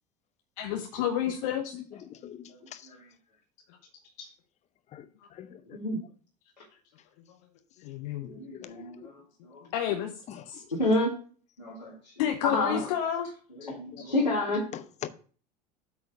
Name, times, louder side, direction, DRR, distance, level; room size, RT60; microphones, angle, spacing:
voice 1, 0.6-1.7 4.2-4.3 7.8-8.4 9.6-10.1 10.5-10.6 12.2-13.3 14.0-14.1, left 10 dB, 55° left, 1.0 m, -30 dB
voice 2, 2.2-2.9 4.9-5.8 8.2-9.1 10.3-10.4 12.7-12.9 13.7-14.0 14.7-15.1, left 10 dB, 35° left, 0.8 m, -43 dB
voice 3, 8.3-9.1 9.4-9.6 10.7-11.2 11.6-11.9 12.4-12.8 13.6-14.6, left 2 dB, 90° left, 2.1 m, -29 dB
8.5 x 4.4 x 6.5 m
figure-of-eight pair, 70°, 21 cm